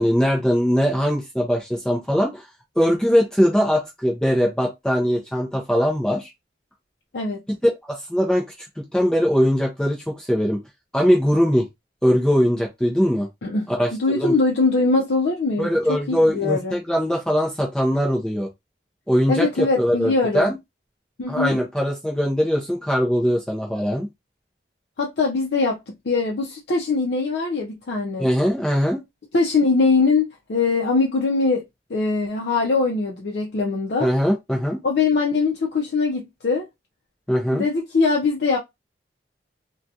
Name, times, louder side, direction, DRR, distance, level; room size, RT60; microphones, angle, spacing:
voice 1, 0.0-2.5 2.8-6.3 7.9-8.5 8.9-10.6 10.9-11.7 12.0-13.3 13.7-14.3 15.6-18.5 19.1-20.6 21.3-24.1 28.2-29.0 34.0-34.8 37.3-37.6, equal, 5° left, 0.4 m, -21 dB
voice 2, 13.4-16.0 16.3-16.7 19.3-20.5 21.2-21.5 25.0-25.8 26.1-28.3 29.3-31.6 31.9-34.1 34.8-36.6 37.5-38.6, left 3 dB, 75° left, 0.5 m, -22 dB
2.4 x 2.2 x 2.6 m
head